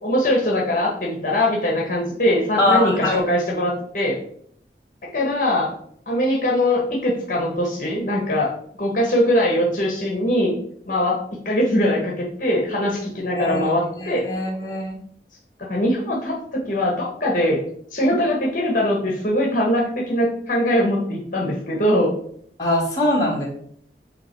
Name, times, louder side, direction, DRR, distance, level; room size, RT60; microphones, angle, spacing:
voice 1, 0.0-4.2 5.0-5.7 6.1-8.5 8.8-10.5 10.9-14.3 15.6-17.6 17.9-22.2, left 1 dB, 45° left, -2 dB, 1.2 m, -21 dB
voice 2, 2.6-3.2 13.3-13.6 14.0-15.0 22.6-23.5, left 1 dB, 20° left, -3 dB, 1.7 m, -22 dB
8.1 x 2.9 x 4.5 m, 0.66 s
head